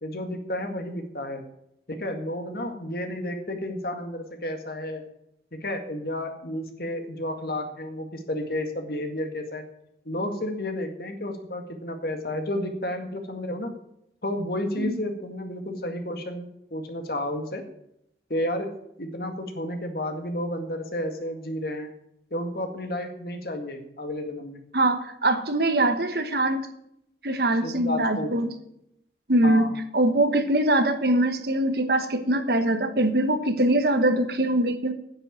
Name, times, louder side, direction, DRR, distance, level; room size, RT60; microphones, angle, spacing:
voice 1, 0.0-1.4 1.9-5.0 5.5-9.6 10.1-13.7 14.2-17.6 18.3-18.7 19.0-21.9 22.3-24.6 27.6-28.3 29.4-29.7, left 1 dB, 60° left, 5 dB, 2.0 m, -31 dB
voice 2, 24.7-26.7 27.2-28.5 29.3-34.9, right 1 dB, 65° right, 9 dB, 1.2 m, -23 dB
9.9 x 8.2 x 8.8 m, 0.77 s
head